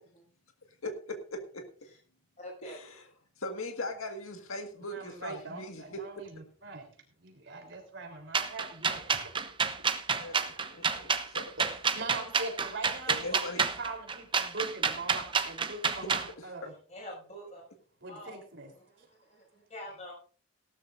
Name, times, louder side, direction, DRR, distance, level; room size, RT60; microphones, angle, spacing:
voice 1, 0.8-1.7 2.6-2.9 3.4-6.0 10.2-11.5 13.1-13.6, left 1 dB, 80° left, 5 dB, 1.8 m, -39 dB
voice 2, 2.4-2.8 16.9-17.6 18.1-18.4 18.7-20.1, left 1 dB, 30° left, -1 dB, 6.6 m, -46 dB
voice 3, 4.9-9.3 11.6-16.7 18.0-18.7, right 2 dB, 55° right, 3 dB, 3.7 m, -42 dB
sound 1, 8.3-16.3, right 5 dB, 25° right, 0.8 m, -29 dB
18.0 x 12.5 x 2.6 m, 0.42 s
head